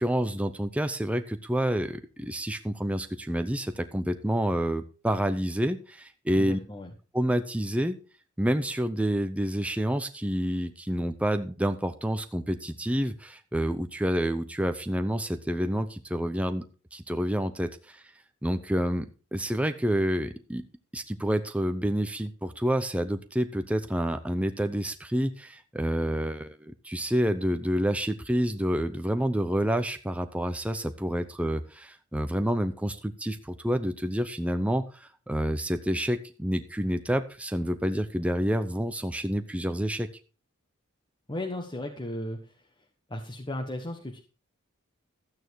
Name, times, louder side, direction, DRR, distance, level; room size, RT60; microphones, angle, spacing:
voice 1, 0.0-6.6 7.1-8.0 8.4-16.6 16.9-18.0 18.4-20.6 20.9-40.1, equal, 5° right, 8 dB, 0.6 m, -28 dB
voice 2, 6.3-6.9 41.3-42.7 43.1-44.2, left 1 dB, 20° left, 2 dB, 1.2 m, -35 dB
13.0 x 8.9 x 4.6 m, 0.34 s
head